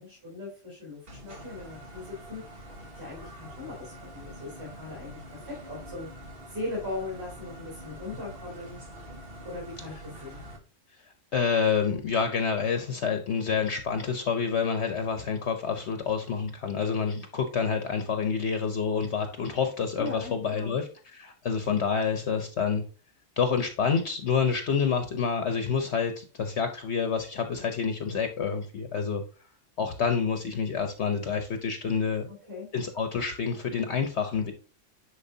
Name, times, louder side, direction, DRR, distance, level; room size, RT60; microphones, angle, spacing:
voice 1, 0.0-2.4 2.8-8.8 9.4-10.4 20.0-20.8 32.4-32.7, left 2 dB, 15° right, -6 dB, 3.4 m, -39 dB
sound 1, 1.1-10.6, equal, 45° right, 1.6 m, -45 dB
voice 2, 11.3-20.8 21.1-22.8 23.4-29.2 29.8-32.3 32.7-34.5, left 6 dB, 60° left, 6 dB, 1.1 m, -28 dB
10.0 x 4.8 x 2.7 m, 0.37 s
omnidirectional pair, 1.4 m